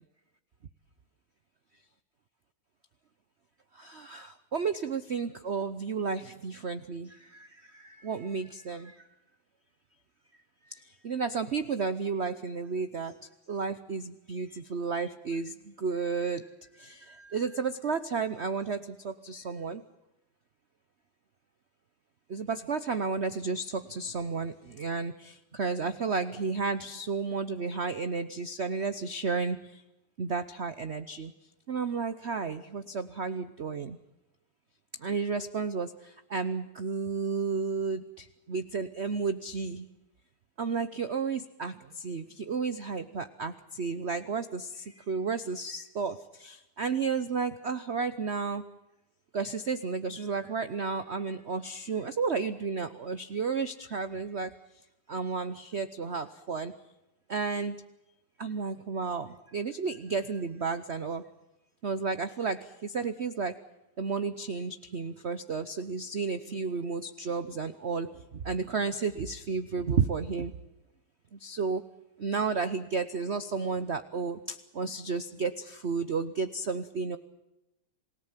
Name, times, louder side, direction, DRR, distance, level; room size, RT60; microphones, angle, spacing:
voice 1, 3.7-9.0 10.7-13.2 13.5-16.5 16.7-19.8 22.3-29.8 30.2-31.3 31.7-34.0 35.0-39.9 40.6-48.6 49.3-54.5 55.1-56.7 57.3-57.8 58.4-61.2 61.8-63.6 64.0-70.5 71.3-71.8 72.2-77.2, right 5 dB, 50° right, 11 dB, 0.8 m, -32 dB
27.5 x 18.0 x 7.5 m, 0.93 s
omnidirectional pair, 2.3 m